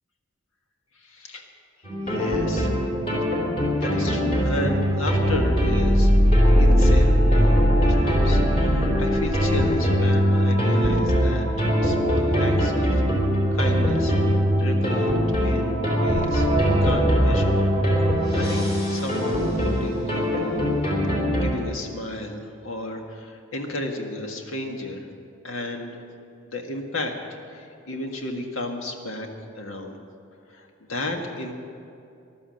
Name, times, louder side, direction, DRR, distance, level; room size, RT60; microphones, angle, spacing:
voice 1, 1.0-1.5 2.0-2.9 3.4-3.5 3.8-6.1 6.6-13.0 13.5-17.6 18.3-20.8 21.3-25.1 25.4-26.0 26.5-27.1 27.5-29.3 29.6-30.0 30.5-31.5, left 2 dB, 85° left, 3 dB, 1.7 m, -33 dB
sound 1, 1.8-21.5, equal, 30° left, 3.7 m, -21 dB
15.0 x 11.5 x 6.4 m, 2.6 s
head